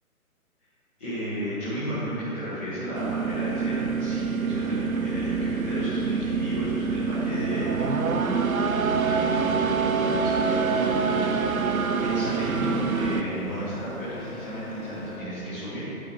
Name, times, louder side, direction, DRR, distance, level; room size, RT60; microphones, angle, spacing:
voice 1, 1.0-8.2 8.5-15.8, equal, 10° left, -13 dB, 0.7 m, -34 dB
sound 1, 2.9-13.2, right 5 dB, 70° right, 0.7 m, -26 dB
sound 2, 10.2-15.2, left 4 dB, 50° left, 2.0 m, -42 dB
9.2 x 7.3 x 4.7 m, 3.0 s
figure-of-eight pair, 140°, 44 cm